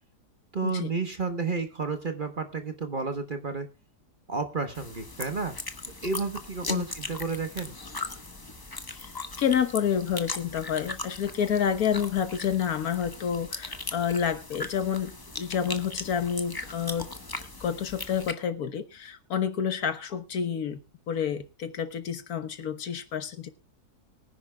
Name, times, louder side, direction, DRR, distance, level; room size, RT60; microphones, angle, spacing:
voice 1, 0.5-3.7 4.3-5.6 6.0-7.8, right 4 dB, 35° right, 1.2 m, -31 dB
sound 1, 4.7-18.3, left 2 dB, 20° left, 0.8 m, -39 dB
voice 2, 9.4-17.1 17.6-20.8 21.1-23.5, left 8 dB, 65° left, 1.5 m, -29 dB
23.5 x 10.0 x 2.3 m
omnidirectional pair, 1.7 m